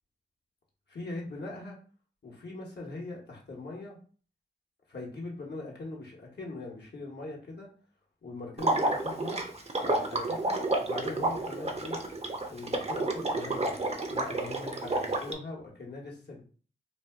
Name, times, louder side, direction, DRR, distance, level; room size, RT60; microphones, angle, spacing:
voice 1, 0.9-1.8 2.2-4.0 4.9-7.7 8.2-9.5 9.8-12.0 12.5-13.8 14.1-16.4, left 2 dB, 60° left, -2 dB, 1.0 m, -41 dB
Water / Liquid, 8.6-15.3, right 2 dB, 35° right, 0.6 m, -30 dB
2.6 x 2.2 x 3.3 m, 0.41 s
cardioid pair, 50°, 19 cm